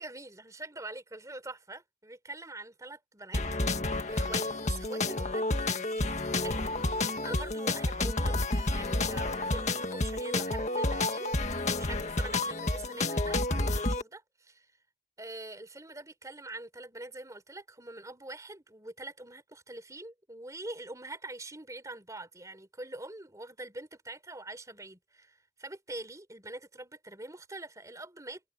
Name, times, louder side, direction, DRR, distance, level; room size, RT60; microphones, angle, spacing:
voice 1, 0.0-3.4 3.9-6.1 6.4-6.6 7.0-14.7 15.2-28.4, right 2 dB, 20° right, 3.9 m, -44 dB
sound 1, 3.3-14.0, left 2 dB, 40° left, 1.8 m, -30 dB
head